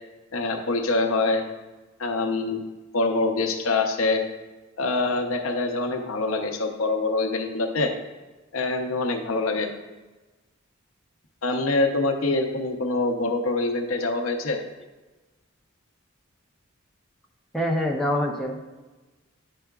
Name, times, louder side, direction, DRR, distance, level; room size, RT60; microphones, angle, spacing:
voice 1, 0.3-1.4 2.0-2.6 2.9-4.2 4.8-7.9 8.5-9.7 11.4-14.6, left 3 dB, 75° left, 4 dB, 0.7 m, -25 dB
voice 2, 17.5-18.6, equal, ahead, 0 dB, 0.5 m, -25 dB
9.7 x 4.7 x 2.3 m, 1.2 s
head